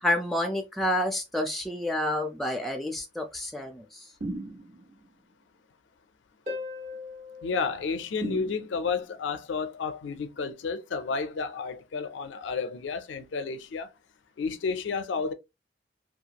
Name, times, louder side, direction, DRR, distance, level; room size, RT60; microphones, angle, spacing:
voice 1, 0.0-4.1, left 1 dB, ahead, 0.4 m, -29 dB
sound 1, 4.2-5.1 8.2-9.1, right 2 dB, 90° right, 1.2 m, -37 dB
Harp, 6.5-9.0 12.5-12.6, left 4 dB, 35° right, 0.8 m, -40 dB
voice 2, 7.4-13.9 14.4-15.3, left 5 dB, 85° left, 0.4 m, -31 dB
2.4 x 2.3 x 2.8 m
head